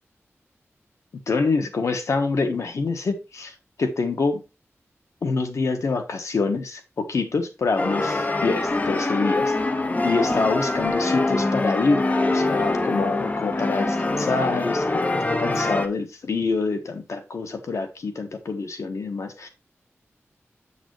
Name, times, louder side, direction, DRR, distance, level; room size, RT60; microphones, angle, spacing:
voice 1, 1.3-4.4 5.2-9.5 10.0-12.0 12.3-19.5, left 4 dB, 85° left, 1.2 m, -26 dB
sound 1, 7.8-15.9, left 2 dB, 30° left, 0.8 m, -24 dB
7.5 x 7.1 x 3.1 m
wide cardioid pair, 95°, 5 cm